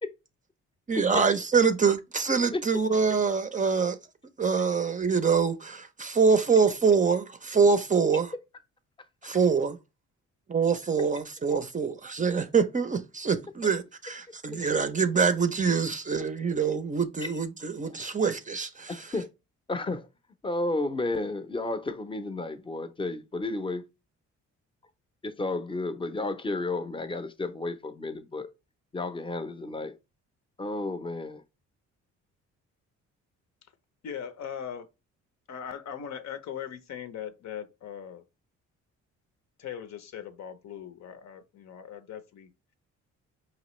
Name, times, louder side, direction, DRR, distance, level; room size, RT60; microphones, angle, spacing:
voice 1, 0.9-4.0 4.4-8.3 9.2-9.7 10.5-18.9, right 5 dB, 25° right, 0.5 m, -25 dB
voice 2, 18.9-19.3 19.7-20.1 20.4-23.9 25.2-28.5 28.9-30.0 30.6-31.4, left 2 dB, 15° left, 0.6 m, -32 dB
voice 3, 34.0-34.9 35.5-38.2 39.6-42.5, left 8 dB, 65° left, 0.7 m, -39 dB
4.9 x 3.0 x 3.0 m
cardioid pair, 90°, 30 cm